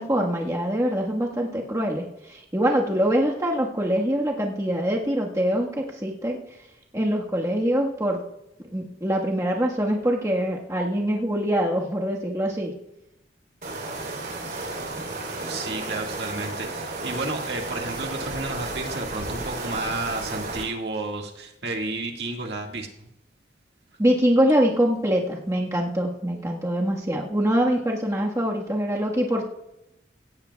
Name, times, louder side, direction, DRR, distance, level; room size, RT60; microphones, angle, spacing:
voice 1, 0.0-6.4 6.9-8.2 8.7-12.8 24.0-29.4, equal, 20° right, -2 dB, 1.4 m, -24 dB
sound 1, 13.6-20.6, right 2 dB, 50° right, 3.3 m, -33 dB
voice 2, 15.5-23.1, right 2 dB, 65° right, 1 dB, 1.8 m, -31 dB
17.5 x 15.0 x 2.3 m, 0.86 s
head